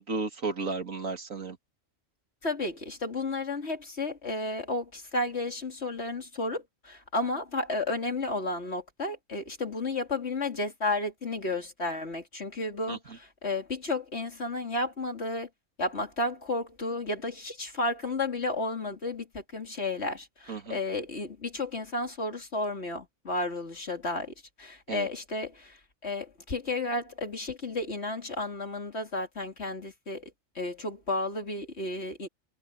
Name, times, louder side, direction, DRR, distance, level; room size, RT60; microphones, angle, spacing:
voice 1, 0.0-1.6 12.9-13.0 20.5-20.8 24.9-25.1, right 4 dB, 90° right, 2.7 m, -33 dB
voice 2, 2.4-15.5 15.8-32.3, left 2 dB, 55° left, 3.3 m, -32 dB
omnidirectional pair, 1.4 m